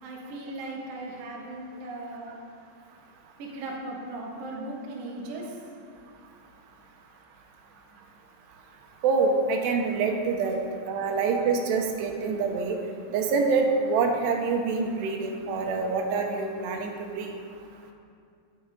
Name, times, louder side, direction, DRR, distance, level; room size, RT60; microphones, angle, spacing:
voice 1, 0.0-2.4 3.4-5.6, right 2 dB, 65° right, -2 dB, 1.5 m, -37 dB
voice 2, 9.0-10.6 10.9-12.8 13.1-17.3, right 4 dB, 85° right, 3 dB, 3.0 m, -26 dB
10.5 x 7.1 x 5.2 m, 2.4 s
omnidirectional pair, 4.9 m